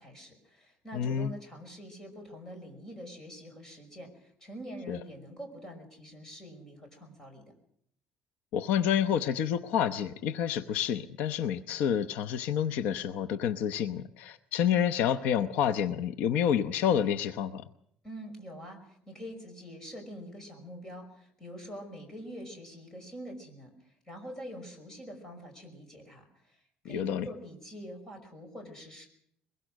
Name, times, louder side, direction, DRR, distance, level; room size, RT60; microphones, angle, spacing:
voice 1, 0.0-7.4 18.0-26.6 26.8-29.1, equal, 20° left, 3 dB, 5.6 m, -45 dB
voice 2, 0.9-1.3 4.9-5.0 8.5-17.6 26.8-27.3, left 9 dB, 75° left, 10 dB, 0.8 m, -29 dB
22.5 x 21.5 x 6.4 m, 0.70 s
cardioid pair, 160°, 3 cm